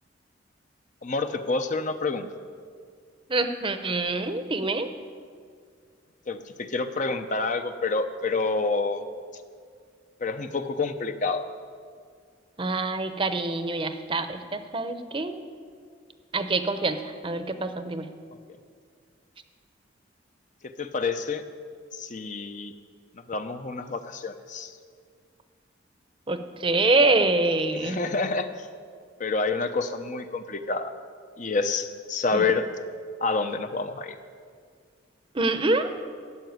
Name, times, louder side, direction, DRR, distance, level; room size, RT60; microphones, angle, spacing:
voice 1, 1.0-2.3 6.3-9.1 10.2-11.4 20.6-21.4 21.9-22.7 23.3-24.7 27.7-28.6 29.2-30.9 31.4-32.7 33.2-34.2, left 3 dB, 40° left, 8 dB, 0.7 m, -28 dB
voice 2, 3.3-4.9 12.6-15.4 16.3-18.1 26.3-28.0 32.3-32.4 35.3-35.9, right 2 dB, 25° right, 9 dB, 0.8 m, -25 dB
14.0 x 7.7 x 9.4 m, 2.1 s
head